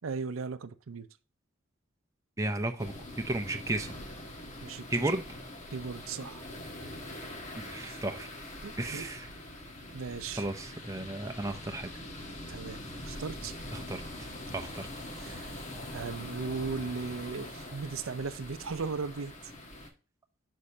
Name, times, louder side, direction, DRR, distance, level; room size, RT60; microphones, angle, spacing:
voice 1, 0.0-1.1 4.6-5.1 5.7-6.5 7.7-8.0 8.6-9.1 9.9-10.4 12.5-12.8 13.1-13.5 15.2-15.5 15.9-19.4, right 4 dB, 80° right, 0.6 m, -37 dB
voice 2, 2.4-3.9 4.9-5.2 7.6-8.3 8.8-9.3 10.4-11.9 13.7-14.0 14.5-14.9, right 2 dB, 15° right, 0.8 m, -33 dB
sound 1, 2.8-19.9, left 1 dB, 40° left, 1.4 m, -43 dB
6.5 x 6.4 x 2.7 m
head